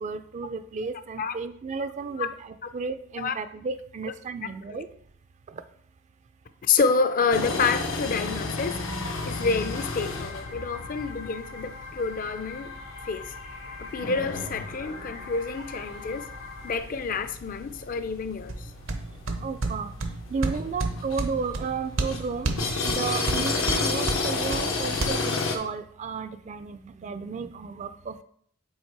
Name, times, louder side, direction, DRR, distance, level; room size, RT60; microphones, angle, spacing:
voice 1, 0.0-4.9 19.4-19.9 20.3-22.5 22.8-28.2, right 5 dB, 35° right, 0.3 m, -33 dB
voice 2, 6.7-8.8 9.3-12.7 13.0-13.3 13.8-16.3 16.6-18.7, left 5 dB, 45° left, 0.4 m, -28 dB
sound 1, 7.3-25.6, left 3 dB, 85° left, 0.8 m, -33 dB
sound 2, 9.3-16.8, left 4 dB, 65° left, 1.2 m, -42 dB
sound 3, 18.5-25.1, right 2 dB, 70° right, 0.7 m, -32 dB
5.4 x 3.9 x 4.6 m
head